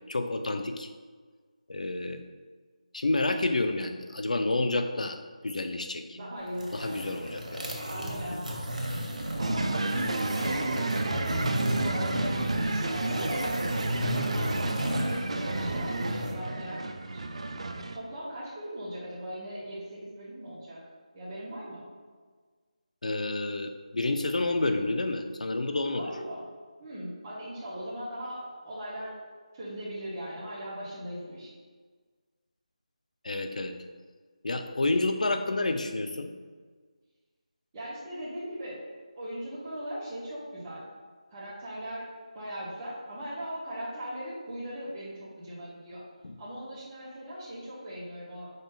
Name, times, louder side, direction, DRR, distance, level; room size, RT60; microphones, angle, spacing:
voice 1, 0.1-0.9 1.7-2.2 2.9-5.2 5.4-6.2 6.7-7.8 8.3-8.4 23.0-26.1 33.2-33.7 34.4-36.3 46.2-46.4, left 2 dB, 70° left, 7 dB, 0.5 m, -29 dB
voice 2, 6.1-7.0 7.9-13.7 13.9-16.8 17.2-17.4 17.7-20.8 21.1-21.8 25.9-26.4 26.8-29.2 29.5-31.5 37.7-38.8 39.2-40.8 41.3-42.1 42.3-46.0 46.4-48.5, equal, 15° right, -10 dB, 0.8 m, -39 dB
sound 1, 6.5-16.4, equal, 85° right, 1.1 m, -33 dB
sound 2, 9.4-18.0, right 2 dB, 55° right, 0.4 m, -32 dB
5.2 x 2.5 x 3.7 m, 1.5 s
figure-of-eight pair, 170°, 4 cm